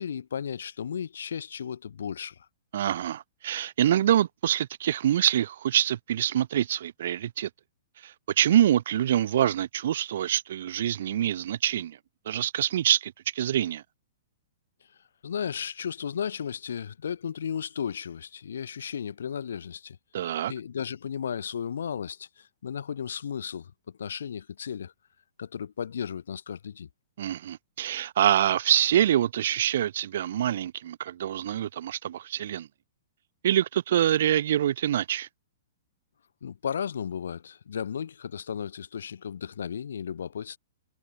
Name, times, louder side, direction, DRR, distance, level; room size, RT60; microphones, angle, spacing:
voice 1, 0.0-2.4 15.2-20.0 20.5-23.7 24.0-24.9 25.4-26.9 36.4-40.6, left 7 dB, 85° left, 6.6 m, -34 dB
voice 2, 2.7-7.5 8.0-12.0 12.3-13.8 20.1-20.5 27.2-32.7 33.4-35.3, right 11 dB, 65° right, 2.4 m, -25 dB
hypercardioid pair, 145°, 0 cm